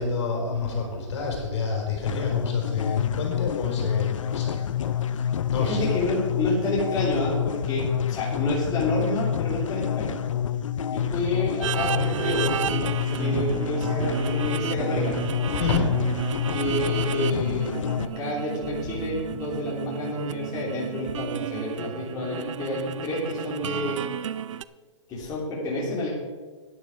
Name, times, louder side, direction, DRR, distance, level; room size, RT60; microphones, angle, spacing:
voice 1, 0.0-4.9 5.5-5.9 15.5-15.9, left 5 dB, 60° left, 0 dB, 4.3 m, -28 dB
sound 1, 2.1-18.1, left 9 dB, 80° left, 0.6 m, -28 dB
voice 2, 5.6-10.2 10.9-15.1 16.5-24.0 25.1-26.1, left 1 dB, 25° left, -5 dB, 3.2 m, -29 dB
sound 2, 11.6-24.6, right 10 dB, 70° right, 0.5 m, -32 dB
13.0 x 9.9 x 4.9 m, 1.4 s
hypercardioid pair, 140°, 16 cm